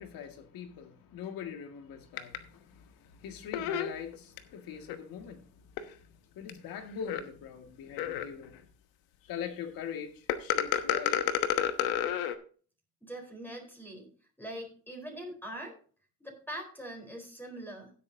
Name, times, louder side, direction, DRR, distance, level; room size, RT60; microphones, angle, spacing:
voice 1, 0.0-5.9 6.3-8.6 9.2-11.3, left 7 dB, 70° left, 2.2 m, -42 dB
sound 1, 2.2-2.4 3.5-4.4 4.9-5.0 5.8-5.9 6.5-6.6 7.0-7.2 8.0-8.5 10.3-12.3, left 10 dB, 85° left, 1.2 m, -29 dB
voice 2, 13.0-14.1 14.4-15.8 16.2-17.9, right 1 dB, 5° left, 4.2 m, -42 dB
15.5 x 8.5 x 2.8 m
cardioid pair, 110°, 36 cm